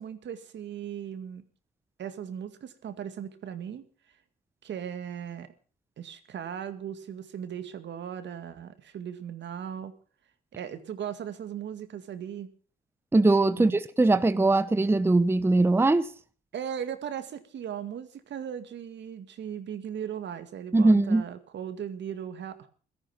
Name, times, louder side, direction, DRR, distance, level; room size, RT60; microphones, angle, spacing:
voice 1, 0.0-1.4 2.0-3.8 4.6-5.5 6.0-9.9 10.6-12.5 13.6-13.8 16.5-22.7, right 8 dB, 65° right, 2.0 m, -37 dB
voice 2, 13.1-16.1 20.7-21.2, right 2 dB, 10° right, 0.7 m, -21 dB
16.5 x 13.5 x 6.0 m
cardioid pair, 90°, 20 cm